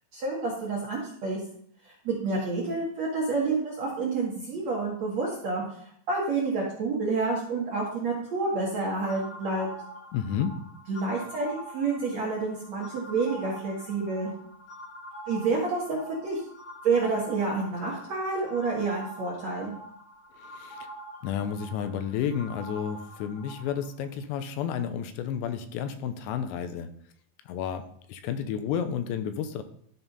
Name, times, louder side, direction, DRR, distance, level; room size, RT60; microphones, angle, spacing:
voice 1, 0.1-1.4 1.8-5.6 6.1-9.7 10.9-11.5 11.7-14.3 15.3-16.4 16.8-19.7, right 3 dB, 60° right, -3 dB, 1.9 m, -29 dB
sound 1, 9.1-23.9, right 1 dB, 45° left, 1.4 m, -45 dB
voice 2, 10.1-10.6 20.4-20.9 21.2-26.9 27.5-29.6, left 8 dB, 80° left, 9 dB, 2.8 m, -31 dB
12.5 x 4.4 x 5.3 m, 0.63 s
omnidirectional pair, 5.2 m